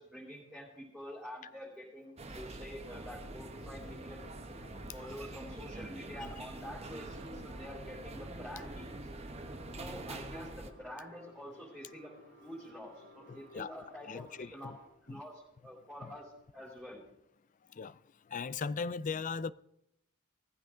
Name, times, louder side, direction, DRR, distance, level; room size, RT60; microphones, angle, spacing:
voice 1, 0.0-4.2 4.9-9.1 9.7-12.1 12.4-14.7 15.0-17.0, equal, ahead, 4.1 m, -47 dB
sound 1, 2.2-10.7, right 2 dB, 30° right, 1.2 m, -45 dB
sound 2, 3.0-14.9, left 1 dB, 80° left, 7.2 m, -58 dB
voice 2, 13.3-13.7 14.1-14.8 15.1-15.2 16.0-16.1 17.7-18.0 18.3-19.5, left 5 dB, 40° left, 0.4 m, -38 dB
18.5 x 15.0 x 3.8 m
head